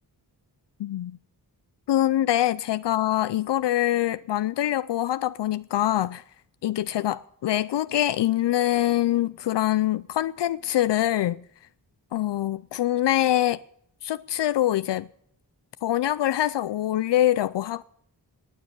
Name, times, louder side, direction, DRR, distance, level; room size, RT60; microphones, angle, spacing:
voice 1, 0.8-1.1 1.9-6.2 6.6-11.4 12.1-13.6 14.0-15.1 15.8-17.8, left 13 dB, 80° left, 0.5 m, -24 dB
18.0 x 9.5 x 6.7 m
wide cardioid pair, 145°, 41 cm